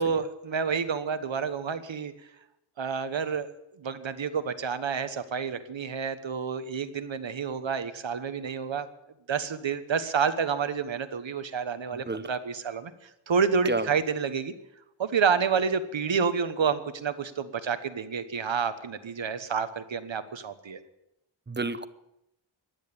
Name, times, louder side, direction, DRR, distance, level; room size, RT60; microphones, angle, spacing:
voice 1, 0.0-2.1 2.8-3.5 3.8-8.9 9.3-12.9 13.3-14.5 15.0-20.8, right 6 dB, 65° right, 11 dB, 1.3 m, -29 dB
voice 2, 11.9-12.3 13.7-13.9 21.5-21.9, right 3 dB, 20° right, 13 dB, 0.8 m, -30 dB
15.5 x 10.5 x 8.7 m, 0.86 s
wide cardioid pair, 120°, 50 cm